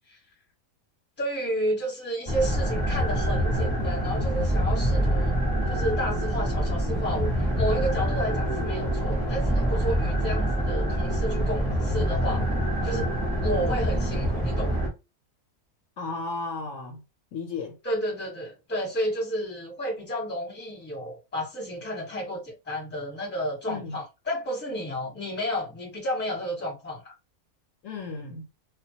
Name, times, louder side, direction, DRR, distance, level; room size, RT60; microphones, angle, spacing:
voice 1, 1.2-5.4 5.7-12.4 12.8-13.1 13.4-14.8 17.8-27.1, equal, 10° left, 0.9 m, -31 dB
sound 1, 2.3-14.9, equal, 20° right, 0.7 m, -26 dB
voice 2, 16.0-17.0 17.3-17.8 23.7-24.0 27.8-28.5, left 4 dB, 70° left, 0.9 m, -34 dB
2.3 x 2.2 x 2.7 m
omnidirectional pair, 1.5 m